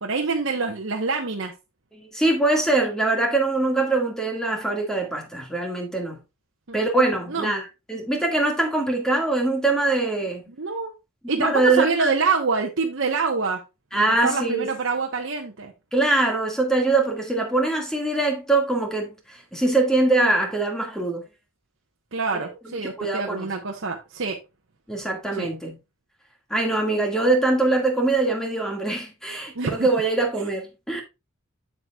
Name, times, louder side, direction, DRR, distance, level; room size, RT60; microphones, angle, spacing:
voice 1, 0.0-1.5 6.7-6.8 7.3-7.5 10.6-10.9 11.3-13.6 13.9-15.7 22.1-24.4 25.3-25.5 29.5-29.9, right 4 dB, 60° right, 1.0 m, -26 dB
voice 2, 1.9-6.2 6.7-10.5 11.4-12.2 13.9-14.7 15.9-21.3 22.7-23.5 24.9-25.8 26.5-31.0, right 2 dB, 5° left, 1.8 m, -23 dB
7.8 x 7.7 x 2.3 m
head